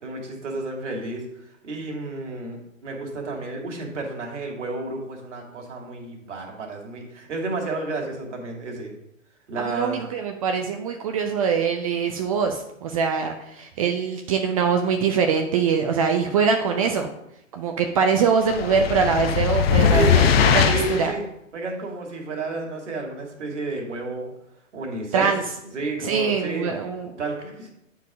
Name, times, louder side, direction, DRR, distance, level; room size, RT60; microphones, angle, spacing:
voice 1, 0.0-8.9 9.5-10.0 19.8-20.3 20.7-21.2 21.5-24.3 24.7-25.3 25.7-26.7 27.2-27.7, right 2 dB, 60° right, 1 dB, 2.4 m, -31 dB
voice 2, 9.6-17.1 17.5-20.0 20.4-20.7 21.0-21.1 25.1-25.4 26.0-27.1, right 6 dB, 25° right, 4 dB, 0.5 m, -23 dB
sound 1, 18.5-21.1, left 7 dB, 50° left, 0.8 m, -20 dB
9.1 x 4.7 x 4.9 m, 0.81 s
figure-of-eight pair, 120°, 40 cm